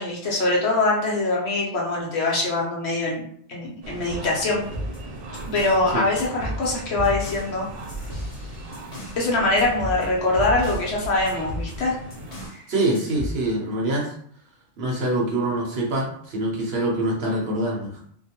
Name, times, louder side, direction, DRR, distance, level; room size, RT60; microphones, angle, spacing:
voice 1, 0.0-4.7 5.4-7.6 9.2-11.9 12.5-12.6, left 2 dB, 60° left, -3 dB, 0.9 m, -23 dB
sound 1, 3.8-12.5, right 1 dB, 85° right, 1.0 m, -37 dB
sound 2, 4.6-5.9 6.2-9.2 9.6-10.9 11.3-12.6 12.9-13.4, equal, 40° left, 0.7 m, -34 dB
voice 2, 12.7-14.1 14.8-18.0, right 1 dB, 60° right, -2 dB, 0.9 m, -25 dB
2.5 x 2.2 x 2.8 m, 0.62 s
omnidirectional pair, 1.3 m